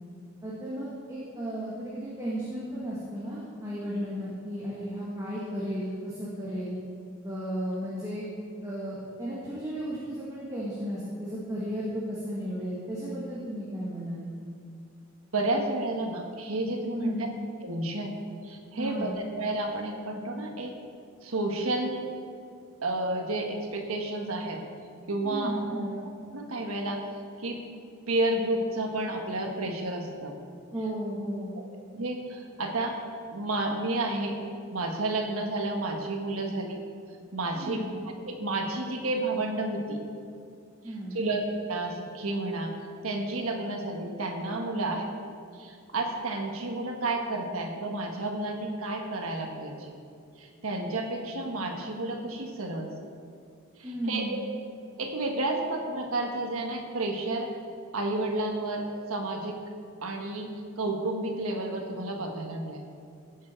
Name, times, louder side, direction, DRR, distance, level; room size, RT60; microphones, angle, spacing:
voice 1, 0.4-6.8 7.2-8.2 8.6-14.3 17.0-17.3 18.7-19.1 25.2-26.0 30.7-31.6 37.5-37.9 40.8-41.2 44.7-44.9 53.8-54.4, equal, 15° right, -8 dB, 1.9 m, -34 dB
voice 2, 15.3-17.3 17.6-18.2 18.4-20.7 21.2-22.1 22.8-24.6 25.1-25.8 26.3-27.0 27.4-27.6 28.1-30.3 31.9-33.0 33.3-34.4 34.7-36.8 37.3-37.9 38.2-40.0 41.1-41.4 41.7-42.7 43.0-45.0 45.5-49.9 50.4-52.9 53.8-54.4 55.0-57.5 57.9-59.6 60.0-62.8, right 2 dB, 90° right, 2 dB, 1.4 m, -31 dB
16.5 x 7.4 x 4.5 m, 2.3 s
head